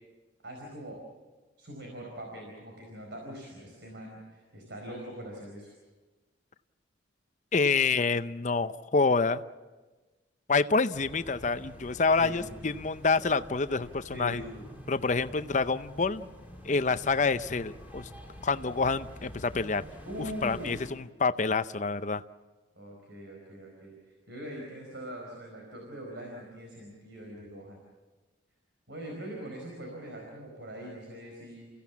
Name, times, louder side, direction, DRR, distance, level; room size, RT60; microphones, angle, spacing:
voice 1, 0.4-1.0 1.6-5.7 12.2-12.8 14.1-14.7 20.0-21.1 22.7-27.8 28.9-31.8, equal, 65° right, 0 dB, 4.7 m, -42 dB
voice 2, 7.5-9.4 10.5-14.4 14.9-16.3 16.6-18.1 18.4-19.8 20.4-22.2, left 4 dB, 40° left, 12 dB, 0.6 m, -27 dB
sound 1, 10.9-20.9, equal, 10° right, 3.3 m, -48 dB
29.5 x 16.0 x 7.3 m, 1.2 s
head